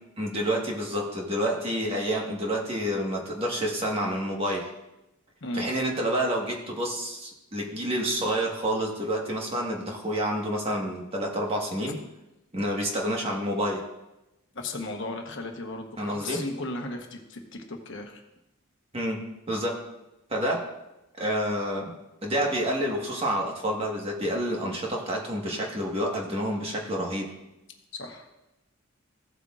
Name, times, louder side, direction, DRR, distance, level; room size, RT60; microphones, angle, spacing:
voice 1, 0.2-4.7 5.5-11.9 12.5-13.8 16.0-16.4 18.9-19.8 20.3-20.7 21.2-21.9 22.2-27.3, equal, 25° right, -1 dB, 1.5 m, -28 dB
voice 2, 14.5-18.2 27.9-28.3, left 2 dB, 55° left, 3 dB, 1.1 m, -35 dB
15.5 x 8.0 x 2.5 m, 0.95 s
head